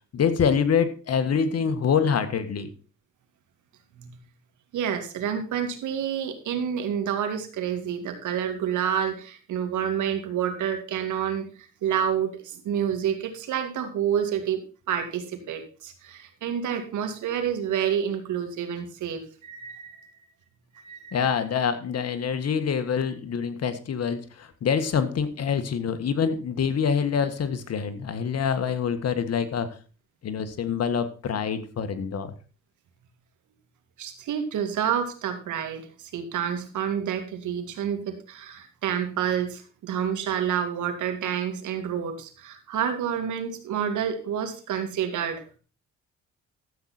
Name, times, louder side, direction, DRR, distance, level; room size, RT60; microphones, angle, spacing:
voice 1, 0.1-2.7 21.1-29.7 30.2-32.3, left 6 dB, 55° left, 10 dB, 1.7 m, -25 dB
voice 2, 4.7-20.1 20.7-21.2 34.0-45.6, right 8 dB, 75° right, 6 dB, 2.4 m, -29 dB
13.0 x 8.0 x 4.3 m, 0.36 s
cardioid pair, 90°, 30 cm